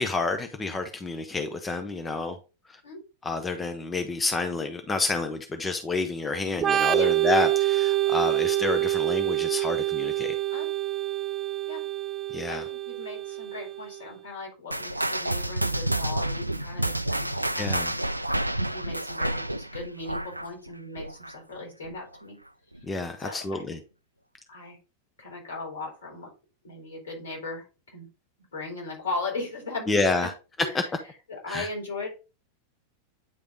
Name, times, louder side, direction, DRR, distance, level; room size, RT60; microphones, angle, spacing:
voice 1, 0.0-2.4 3.2-10.3 12.3-12.6 17.6-17.9 22.8-23.8 29.9-30.3 30.7-30.8 31.5-31.7, left 3 dB, 15° left, 0.9 m, -29 dB
Organ, 6.6-14.1, right 14 dB, 20° right, 0.5 m, -26 dB
voice 2, 12.5-22.4 23.2-23.8 24.5-24.8 25.2-26.3 26.6-28.1 28.5-30.3 30.6-30.9 31.3-32.1, left 3 dB, 70° left, 3.5 m, -38 dB
sound 1, 14.7-21.6 21.8-22.2 22.7-22.8 23.6-23.7, right 1 dB, 85° right, 0.3 m, -29 dB
9.3 x 3.4 x 3.8 m
figure-of-eight pair, 90°, 0 cm